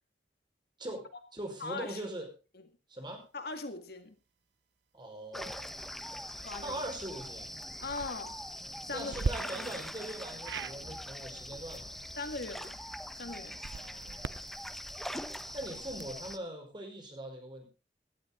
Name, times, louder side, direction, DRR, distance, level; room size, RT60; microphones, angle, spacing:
voice 1, 0.8-2.3 2.9-3.2 4.9-5.7 6.1-6.2 6.6-7.5 8.9-11.9 13.5-14.5 15.5-17.7, right 1 dB, 25° right, 3 dB, 5.2 m, -42 dB
voice 2, 1.6-2.0 3.3-4.2 6.3-6.8 7.8-8.4 8.8-9.1 12.2-12.8 13.1-13.6, left 3 dB, 60° left, 7 dB, 2.1 m, -40 dB
sound 1, 5.3-16.4, equal, ahead, 0.9 m, -42 dB
sound 2, 7.7-8.1 9.1-9.3 10.4-10.8 13.5-16.3, right 4 dB, 80° right, 0.6 m, -39 dB
17.5 x 12.5 x 3.9 m, 0.31 s
head